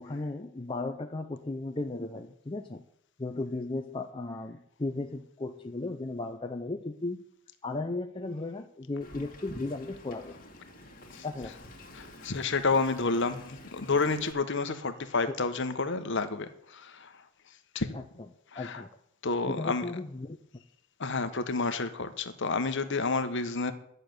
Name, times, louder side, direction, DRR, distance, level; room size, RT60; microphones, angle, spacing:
voice 1, 0.0-2.8 3.2-7.2 7.6-10.4 11.2-11.5 15.3-15.4 17.9-18.0 18.6-18.9 19.5-20.4, left 2 dB, 25° left, 6 dB, 0.6 m, -35 dB
Wind, 9.0-14.3, left 1 dB, 40° left, 2.0 m, -49 dB
voice 2, 11.9-17.2 17.7-18.0 18.5-18.8 19.2-19.9 21.0-23.7, left 3 dB, 55° left, 9 dB, 1.1 m, -30 dB
11.0 x 6.7 x 9.4 m, 0.74 s
head